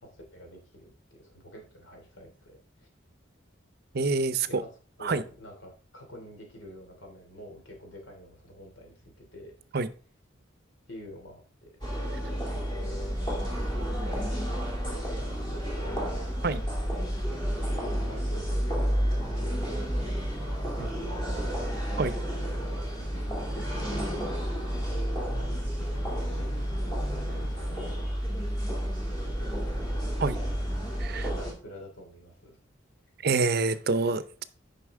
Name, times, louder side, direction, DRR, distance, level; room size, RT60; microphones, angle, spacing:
voice 1, 0.0-2.9 4.4-4.7 5.0-9.5 10.9-11.7 12.0-13.2 14.1-21.8 23.5-25.7 26.2-30.0 31.1-32.6, equal, 90° left, 1 dB, 2.8 m, -47 dB
voice 2, 3.9-4.6 5.0-5.2 9.7-9.9 16.4-16.6 20.8-20.9 22.0-22.2 30.2-30.4 31.0-31.3 33.2-34.4, right 3 dB, 55° right, 14 dB, 0.6 m, -27 dB
sound 1, 11.8-31.5, equal, 25° left, 2.5 m, -31 dB
sound 2, 23.0-28.0, left 1 dB, 70° left, 4.1 m, -46 dB
9.7 x 5.7 x 3.6 m, 0.39 s
head